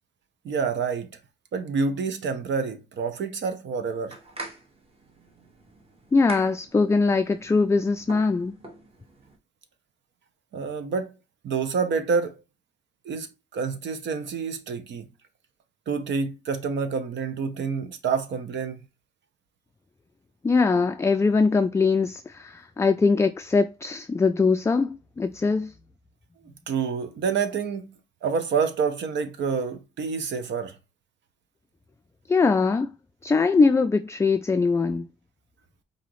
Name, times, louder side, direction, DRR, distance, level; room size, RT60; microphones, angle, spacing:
voice 1, 0.4-1.1 1.5-4.2 10.5-11.1 11.4-12.4 13.0-13.3 13.5-15.1 15.9-18.8 26.7-30.8, right 5 dB, 65° right, 1.0 m, -28 dB
sound 1, 3.8-9.4, right 2 dB, 30° right, 1.4 m, -44 dB
voice 2, 6.1-8.6 20.4-25.7 32.3-32.9 33.2-35.1, left 4 dB, 15° left, 0.3 m, -22 dB
4.9 x 2.7 x 3.0 m
cardioid pair, 90°, 20 cm